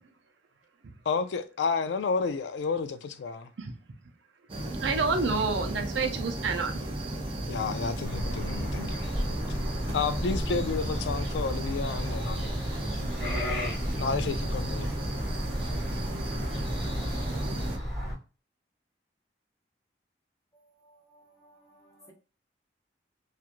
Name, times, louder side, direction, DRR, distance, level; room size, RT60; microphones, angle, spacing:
voice 1, 1.1-3.5 7.5-9.1 9.9-12.5 14.0-14.9, left 5 dB, 75° left, 0.3 m, -31 dB
sound 1, 4.5-17.8, right 1 dB, 30° right, 0.5 m, -34 dB
voice 2, 4.8-6.8, right 4 dB, 80° right, 0.5 m, -28 dB
sound 2, 8.0-18.1, equal, 5° left, 1.4 m, -34 dB
voice 3, 20.5-22.1, right 1 dB, 20° left, 0.7 m, -59 dB
3.0 x 2.4 x 2.4 m
head